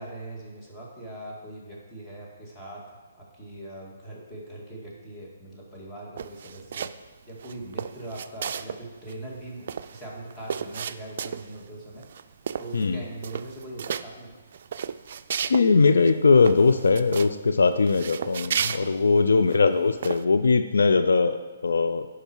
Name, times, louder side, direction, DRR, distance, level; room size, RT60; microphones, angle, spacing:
voice 1, 0.0-2.8 3.1-6.9 7.3-14.3, right 1 dB, 15° left, -5 dB, 2.2 m, -41 dB
sound 1, 6.2-7.1 7.4-8.8 9.1-9.2 9.4-11.6 12.0-12.2 12.5-12.9 13.2-14.0 14.5-15.7 16.0-16.1 16.4-17.3 17.8-19.6 20.0-20.2, right 7 dB, 55° right, 0.3 m, -33 dB
voice 2, 15.4-22.1, left 4 dB, 80° left, 9 dB, 0.5 m, -20 dB
11.0 x 4.9 x 4.6 m, 1.3 s
hypercardioid pair, 145°, 0 cm